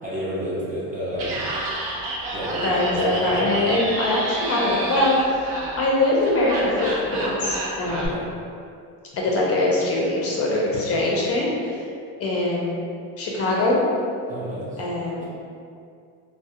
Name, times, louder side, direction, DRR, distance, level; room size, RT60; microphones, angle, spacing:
voice 1, 0.0-1.5 2.3-3.8 7.8-8.3 14.3-14.8, equal, 20° right, -8 dB, 0.4 m, -31 dB
Laughter, 1.1-8.1, right 2 dB, 80° right, 0.6 m, -30 dB
voice 2, 2.6-5.1 5.8-8.2 9.1-11.8 12.2-12.8 13.2-13.8 14.8-15.2, left 2 dB, 40° left, -4 dB, 0.5 m, -22 dB
2.3 x 2.0 x 2.7 m, 2.4 s
cardioid pair, 125°, 39 cm